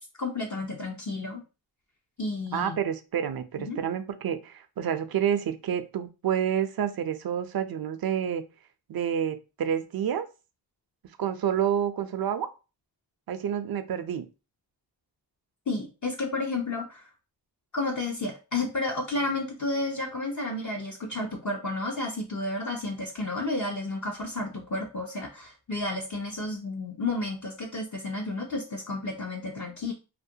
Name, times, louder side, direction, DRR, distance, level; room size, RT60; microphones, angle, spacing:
voice 1, 0.2-1.4 2.2-2.8 3.7-3.8 15.7-17.1 17.7-29.9, left 2 dB, 40° left, 0 dB, 0.6 m, -31 dB
voice 2, 2.5-8.4 8.9-10.3 11.2-12.5 13.3-14.3, right 9 dB, 55° right, 10 dB, 0.5 m, -29 dB
2.4 x 2.1 x 2.7 m, 0.31 s
cardioid pair, 40°, 44 cm